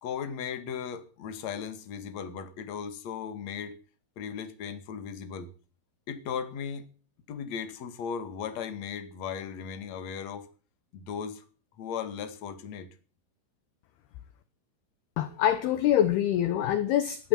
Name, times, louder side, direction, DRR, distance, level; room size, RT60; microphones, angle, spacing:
voice 1, 0.0-3.7 4.2-5.5 6.1-6.9 7.3-10.5 10.9-11.4 11.8-12.9, left 7 dB, 50° left, 9 dB, 2.4 m, -37 dB
voice 2, 15.2-17.3, left 11 dB, 75° left, 12 dB, 2.5 m, -25 dB
19.0 x 11.0 x 5.8 m, 0.39 s
omnidirectional pair, 5.7 m